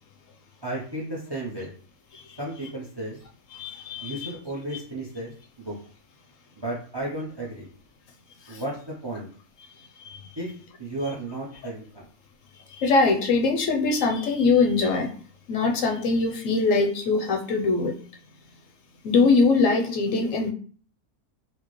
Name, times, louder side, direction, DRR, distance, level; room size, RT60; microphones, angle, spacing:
voice 1, 0.6-1.7 2.4-3.2 4.0-5.7 6.6-7.7 8.5-9.3 10.4-10.5 10.8-11.9, right 1 dB, 40° right, -2 dB, 0.3 m, -33 dB
voice 2, 3.5-4.3 8.5-8.6 10.0-10.3 12.7-15.1 15.5-18.0 19.0-20.5, left 4 dB, 70° left, 3 dB, 0.9 m, -22 dB
4.3 x 2.1 x 3.0 m, 0.43 s
omnidirectional pair, 1.5 m